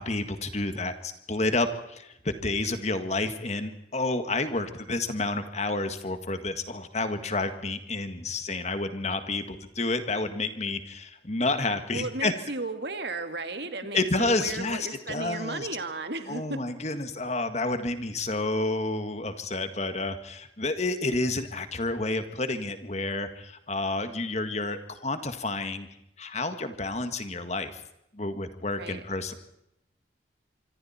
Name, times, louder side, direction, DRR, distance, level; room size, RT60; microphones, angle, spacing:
voice 1, 0.0-12.3 13.9-15.7 16.3-25.9 26.2-27.8 28.1-29.3, left 2 dB, 35° left, 9 dB, 1.8 m, -30 dB
voice 2, 11.9-16.6 28.8-29.0, right 3 dB, 65° right, 8 dB, 2.1 m, -34 dB
26.0 x 24.5 x 4.4 m, 0.80 s
head